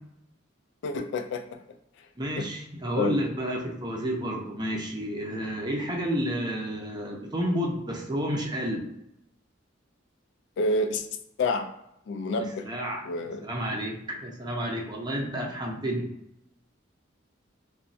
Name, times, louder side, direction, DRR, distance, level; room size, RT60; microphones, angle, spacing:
voice 1, 0.8-1.6 2.4-2.5 3.0-3.2 10.6-11.1 11.4-11.7 12.1-12.7 13.1-13.4, left 2 dB, 60° left, 6 dB, 0.3 m, -28 dB
voice 2, 2.2-8.8 12.6-16.1, equal, 20° right, 0 dB, 0.5 m, -30 dB
3.0 x 2.2 x 2.6 m, 0.80 s
head